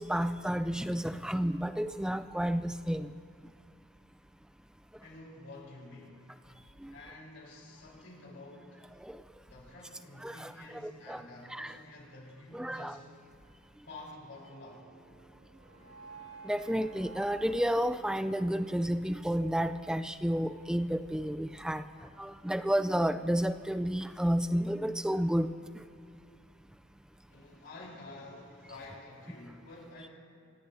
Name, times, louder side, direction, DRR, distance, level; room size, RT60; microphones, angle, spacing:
voice 1, 0.0-3.1 6.8-6.9 9.1-9.2 10.2-11.2 11.5-11.7 12.5-12.9 16.4-21.8 22.2-25.5, equal, 5° right, 10 dB, 0.3 m, -31 dB
voice 2, 5.0-6.2 6.9-8.8 9.5-13.1 13.8-14.8 27.3-30.1, left 2 dB, 65° left, -3 dB, 4.0 m, -49 dB
sound 1, 14.3-20.4, right 4 dB, 55° right, 4.1 m, -54 dB
27.0 x 16.0 x 2.7 m, 2.5 s
head